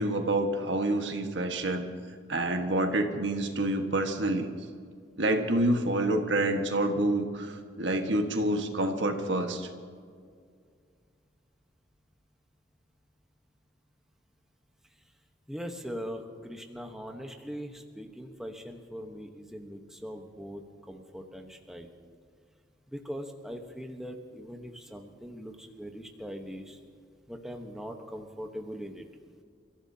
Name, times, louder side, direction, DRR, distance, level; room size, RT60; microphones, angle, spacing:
voice 1, 0.0-1.9 2.3-4.5 5.2-9.7, right 1 dB, 85° right, 4 dB, 1.5 m, -27 dB
voice 2, 15.5-20.6 20.9-21.9 22.9-26.8 27.3-29.0, equal, ahead, 3 dB, 1.1 m, -41 dB
29.0 x 14.5 x 2.8 m, 2.1 s
head